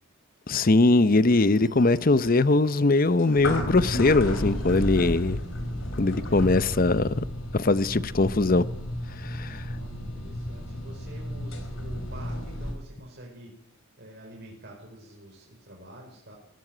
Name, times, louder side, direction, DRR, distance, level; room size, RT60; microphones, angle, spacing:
voice 1, 0.5-5.4 5.9-7.2 7.5-8.6 9.2-9.6, left 2 dB, 40° left, 0.7 m, -21 dB
sound 1, 1.4-12.7, left 1 dB, 60° left, 5.3 m, -33 dB
voice 2, 9.7-16.3, right 1 dB, 50° right, 4.7 m, -47 dB
17.5 x 16.0 x 9.2 m
head